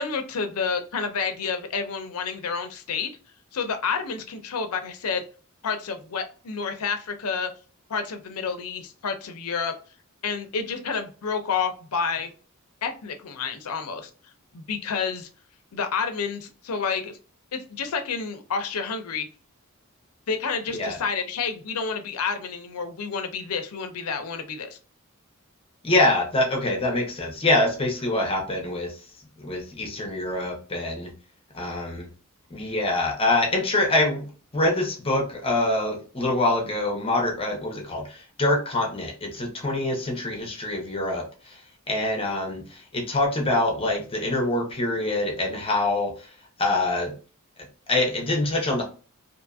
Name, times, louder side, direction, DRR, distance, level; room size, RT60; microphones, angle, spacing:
voice 1, 0.0-3.1 3.5-5.2 5.6-7.5 7.9-9.7 10.2-12.3 12.8-14.1 14.5-15.3 15.7-17.2 17.5-19.3 20.3-24.8, left 5 dB, 85° left, 7 dB, 0.5 m, -29 dB
voice 2, 25.8-29.0 29.4-31.1 31.5-32.1 32.5-34.3 34.5-41.6 41.9-46.3 46.6-47.1 47.9-48.8, left 2 dB, 25° left, 1 dB, 0.7 m, -25 dB
2.7 x 2.6 x 2.3 m, 0.37 s
head